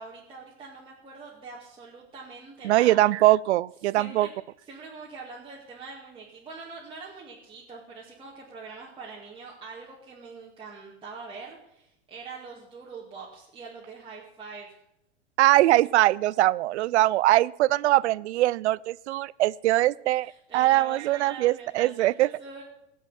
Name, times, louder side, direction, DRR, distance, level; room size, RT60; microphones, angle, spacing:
voice 1, 0.0-3.0 4.0-4.3 4.7-14.7 20.2-22.6, right 4 dB, 15° right, -5 dB, 2.2 m, -44 dB
voice 2, 2.6-4.3 15.4-22.3, right 16 dB, 80° right, 23 dB, 0.5 m, -22 dB
17.5 x 7.6 x 5.6 m, 0.80 s
hypercardioid pair, 125°, 34 cm